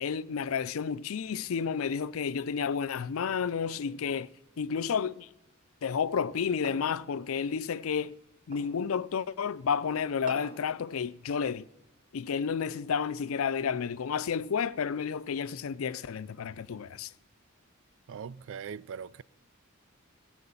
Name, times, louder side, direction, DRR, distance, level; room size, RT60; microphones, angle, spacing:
voice 1, 0.0-4.3 4.6-5.3 5.8-8.2 8.5-11.7 12.1-17.1, left 6 dB, 75° left, 0.4 m, -31 dB
sound 1, 6.6-7.1 8.5-8.8 10.3-10.7, right 2 dB, 40° right, 3.3 m, -44 dB
voice 2, 18.1-19.2, right 7 dB, 65° right, 0.4 m, -40 dB
17.0 x 7.6 x 7.0 m
head